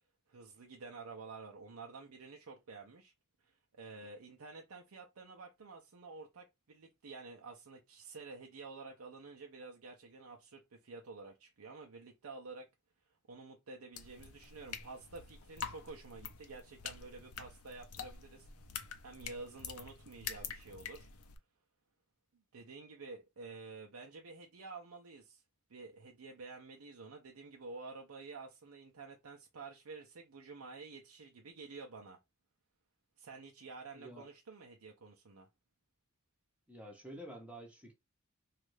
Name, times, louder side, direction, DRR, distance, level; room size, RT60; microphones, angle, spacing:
voice 1, 0.3-3.1 3.4-12.7 13.1-18.5 19.0-21.1 22.5-25.4 25.7-32.2 33.2-35.5, right 3 dB, 75° right, 0.6 m, -50 dB
sound 1, 13.9-21.4, left 7 dB, 75° left, 0.6 m, -47 dB
voice 2, 34.0-34.3 36.7-37.9, equal, 5° right, 0.8 m, -49 dB
3.2 x 2.4 x 3.1 m
head